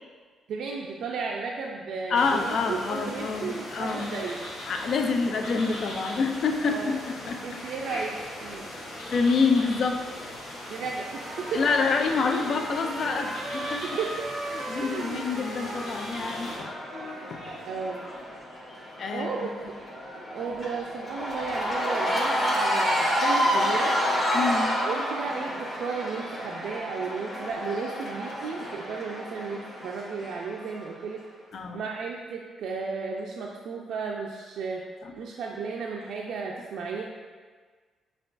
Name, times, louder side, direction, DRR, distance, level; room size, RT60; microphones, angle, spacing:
voice 1, 0.5-4.4 6.6-7.0 7.4-8.7 10.7-11.6 13.8-14.3 14.8-15.4 15.7-15.8 17.7-18.1 19.1-19.5 20.3-24.0 24.8-31.2 31.7-34.8 35.2-37.1, right 5 dB, 70° right, -2 dB, 0.3 m, -34 dB
sound 1, 2.1-16.6, left 1 dB, 75° left, 1.0 m, -39 dB
voice 2, 2.1-4.1 4.7-7.6 8.9-10.1 11.5-13.9 14.5-17.5 19.0-19.3 24.3-24.8 31.5-31.9 35.0-35.1, left 4 dB, 55° left, 5 dB, 0.3 m, -27 dB
Trumpet, 11.0-17.8, right 1 dB, 20° right, 0.5 m, -38 dB
Cheering / Crowd, 15.5-30.8, equal, 30° left, 1.5 m, -29 dB
5.7 x 2.3 x 2.5 m, 1.5 s
cardioid pair, 105°, 0 cm